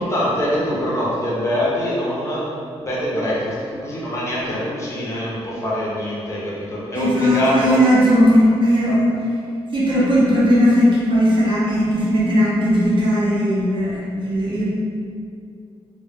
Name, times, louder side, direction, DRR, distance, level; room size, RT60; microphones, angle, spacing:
voice 1, 0.0-2.5 2.8-7.8, equal, 25° left, -7 dB, 0.5 m, -23 dB
voice 2, 6.9-9.1 9.7-14.7, equal, 50° right, -7 dB, 0.6 m, -17 dB
2.0 x 2.0 x 3.3 m, 2.3 s
wide cardioid pair, 155°, 11 cm